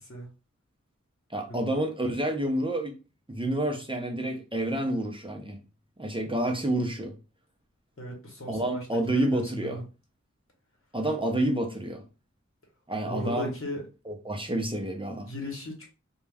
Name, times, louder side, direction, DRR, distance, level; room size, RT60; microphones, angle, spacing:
voice 1, 1.3-3.0 3.3-5.6 6.0-7.1 8.5-9.8 10.9-12.0 12.9-13.5 14.1-15.3, right 1 dB, 15° right, 0.6 m, -29 dB
voice 2, 8.0-9.8 13.0-13.8 15.3-15.8, left 1 dB, 45° left, 0.9 m, -37 dB
2.4 x 2.2 x 3.3 m
wide cardioid pair, 40°, 30 cm